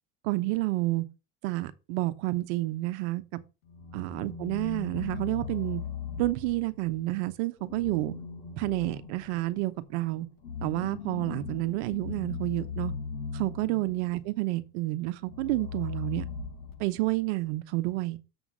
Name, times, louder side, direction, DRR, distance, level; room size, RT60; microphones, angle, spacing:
voice 1, 0.2-1.0 1.4-3.2 3.9-5.8 6.2-8.1 8.6-10.3 10.6-12.9 13.3-16.3 16.8-18.2, right 19 dB, 75° right, 0.9 m, -29 dB
sound 1, 3.6-7.0 7.6-14.2 15.2-17.2, left 6 dB, 75° left, 5.1 m, -39 dB
7.1 x 4.0 x 6.1 m
cardioid pair, 150°, 33 cm